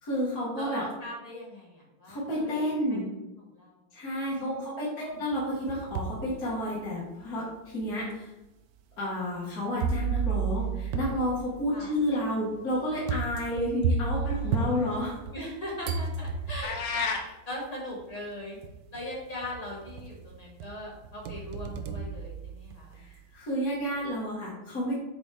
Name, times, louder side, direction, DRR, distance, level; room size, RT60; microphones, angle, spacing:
voice 1, 0.0-0.8 2.1-3.0 3.9-8.3 9.0-15.1 22.9-24.9, equal, 45° left, -7 dB, 1.9 m, -31 dB
voice 2, 0.6-3.2 3.5-3.8 4.4-5.2 11.7-11.9 14.1-18.6 18.9-23.0, left 1 dB, 20° left, -3 dB, 1.5 m, -40 dB
sound 1, 5.3-6.2 6.8-6.9 7.8-7.9 9.8-15.5 15.8-16.9 18.0-18.1 18.6-19.1 19.4-20.2 20.6-23.0, right 5 dB, 75° right, 1.0 m, -32 dB
sound 2, 16.6-17.3, left 5 dB, 70° left, 1.4 m, -30 dB
7.5 x 4.1 x 3.4 m, 1.0 s
omnidirectional pair, 2.4 m